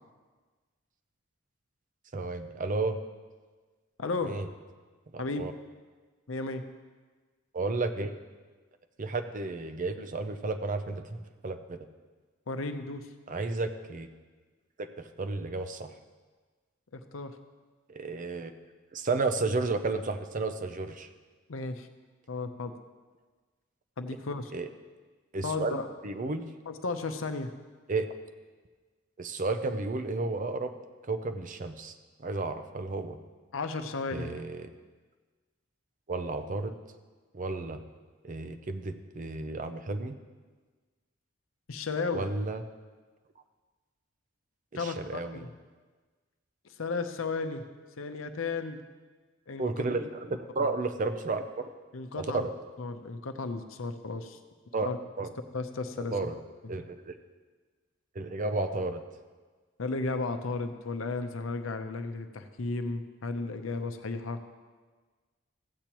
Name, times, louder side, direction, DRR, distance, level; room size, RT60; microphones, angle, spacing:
voice 1, 2.1-3.0 4.2-4.5 5.1-5.5 7.5-8.1 9.0-11.9 13.3-14.1 14.8-15.9 17.9-18.5 18.9-21.1 24.5-24.7 25.3-25.8 26.0-26.4 27.9-28.1 29.2-30.7 31.0-31.9 32.2-33.2 34.1-34.7 36.1-36.7 37.3-37.8 38.2-40.2 42.1-42.6 44.7-45.5 49.6-51.7 52.2-52.5 54.7-54.9 55.2-55.3 56.1-56.4 56.7-57.2 58.1-59.0, right 3 dB, 40° right, 8 dB, 0.6 m, -32 dB
voice 2, 4.0-4.3 5.2-5.5 6.3-6.6 12.5-13.0 16.9-17.3 21.5-21.9 22.3-22.7 24.0-24.5 25.4-25.9 26.7-27.5 33.5-34.3 41.7-42.2 44.8-45.5 46.8-47.6 48.0-48.8 49.5-49.8 51.9-52.5 52.8-54.4 54.8-55.0 55.5-56.3 59.8-64.4, left 3 dB, 85° left, 8 dB, 0.7 m, -34 dB
15.0 x 8.4 x 3.0 m, 1.4 s
head